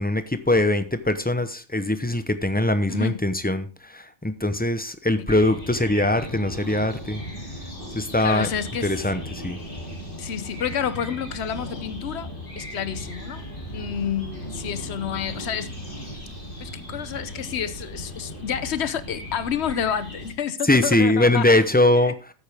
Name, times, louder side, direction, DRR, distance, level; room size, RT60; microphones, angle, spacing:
voice 1, 0.0-3.7 3.9-7.2 8.0-8.5 8.8-9.6 20.7-22.1, left 1 dB, 10° left, 0.7 m, -21 dB
voice 2, 2.9-3.3 5.2-5.3 8.2-9.1 10.2-13.4 13.7-15.8 16.6-21.7 22.0-22.1, left 8 dB, 65° left, 1.0 m, -29 dB
sound 1, 5.3-20.3, equal, 45° left, 3.5 m, -37 dB
13.0 x 8.9 x 3.5 m
omnidirectional pair, 1.2 m